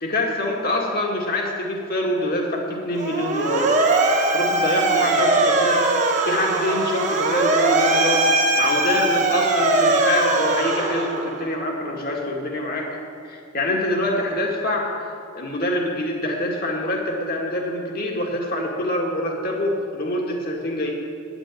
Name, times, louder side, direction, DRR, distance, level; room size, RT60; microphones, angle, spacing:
voice 1, 0.0-3.8 4.3-8.3 8.6-13.0 13.2-20.9, left 1 dB, 45° left, 0 dB, 2.0 m, -25 dB
Motor vehicle (road) / Siren, 2.9-11.5, right 2 dB, 35° right, 1.1 m, -20 dB
9.3 x 9.0 x 9.1 m, 2.4 s
head